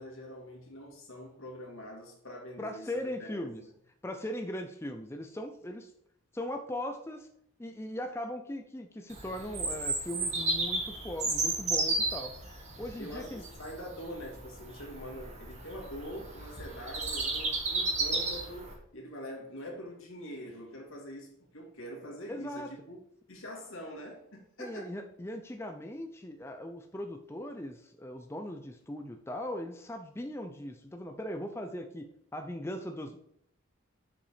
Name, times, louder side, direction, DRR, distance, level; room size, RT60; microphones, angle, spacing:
voice 1, 0.0-3.7 13.0-23.0 23.3-24.9, equal, 75° left, 2.4 m, -44 dB
voice 2, 2.6-3.6 4.0-5.9 6.3-7.3 7.6-12.4 12.8-13.4 22.3-22.7 24.6-33.2, left 1 dB, 10° left, 0.4 m, -39 dB
Bird vocalization bird call bird song, 9.1-18.7, right 2 dB, 35° right, 1.9 m, -33 dB
7.0 x 5.5 x 4.9 m
head